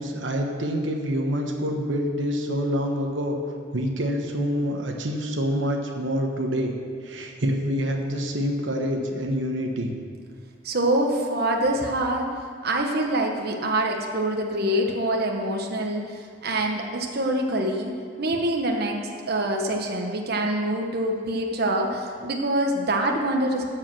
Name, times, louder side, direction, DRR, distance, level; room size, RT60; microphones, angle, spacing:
voice 1, 0.0-3.4 3.7-6.7 7.0-9.9, equal, 85° right, 2 dB, 1.1 m, -26 dB
voice 2, 10.6-12.3 12.6-19.0 19.3-23.7, right 1 dB, 60° right, 2 dB, 1.1 m, -25 dB
13.5 x 4.9 x 7.6 m, 2.1 s
head